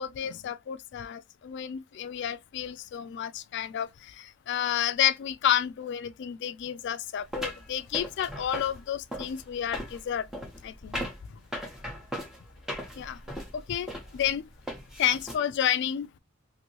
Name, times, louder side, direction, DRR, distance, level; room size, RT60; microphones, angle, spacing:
voice 1, 0.0-10.3 10.6-11.0 13.0-13.2 13.5-14.4 15.0-16.1, left 10 dB, 60° left, 0.3 m, -30 dB
sound 1, 7.3-15.4, equal, 5° right, 0.8 m, -38 dB
2.9 x 2.6 x 2.9 m
head